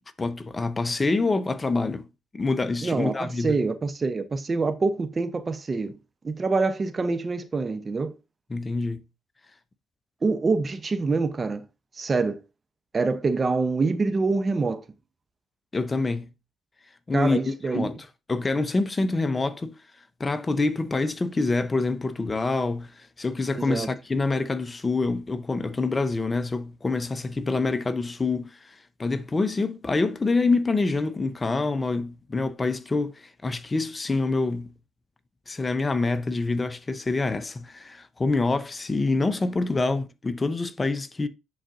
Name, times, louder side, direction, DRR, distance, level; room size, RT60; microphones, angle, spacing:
voice 1, 0.2-2.0 2.3-3.6 8.5-9.0 15.7-16.3 17.1-18.0 18.3-19.8 20.2-28.7 29.0-34.7 35.5-41.3, left 3 dB, 25° left, 0.8 m, -26 dB
voice 2, 2.8-6.0 6.2-8.1 10.2-11.6 12.0-12.4 12.9-14.8 17.1-17.9 23.7-23.9, right 3 dB, 35° right, 0.8 m, -25 dB
10.0 x 3.9 x 2.6 m
supercardioid pair, 65°, 0 cm